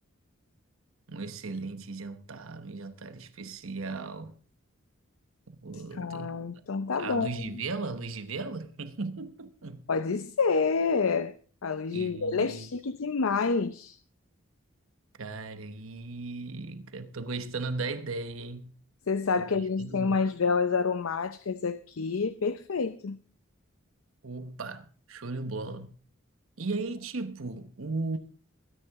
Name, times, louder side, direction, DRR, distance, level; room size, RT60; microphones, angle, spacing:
voice 1, 1.1-4.3 5.5-6.4 7.0-9.9 11.9-12.7 15.2-18.8 19.4-20.2 24.2-26.0 26.6-28.2, right 3 dB, 85° right, 1.0 m, -37 dB
voice 2, 5.9-7.5 9.9-11.3 11.6-14.0 19.1-23.2, left 4 dB, 85° left, 0.6 m, -28 dB
22.5 x 9.8 x 3.6 m
head